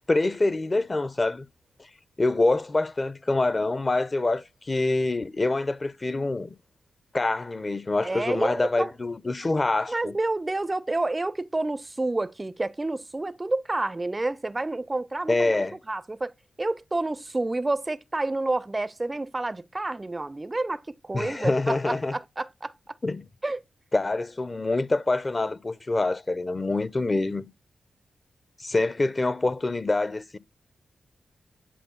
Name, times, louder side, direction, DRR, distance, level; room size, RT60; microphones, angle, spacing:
voice 1, 0.1-1.5 2.2-6.5 7.1-10.1 15.3-15.8 21.1-22.1 23.0-23.2 23.9-27.5 28.6-30.4, left 2 dB, 35° left, 0.6 m, -25 dB
voice 2, 8.0-8.9 9.9-15.6 15.9-16.3 16.6-23.0 23.4-23.6, right 2 dB, 25° right, 0.4 m, -29 dB
10.0 x 4.3 x 7.0 m
cardioid pair, 60°, 0 cm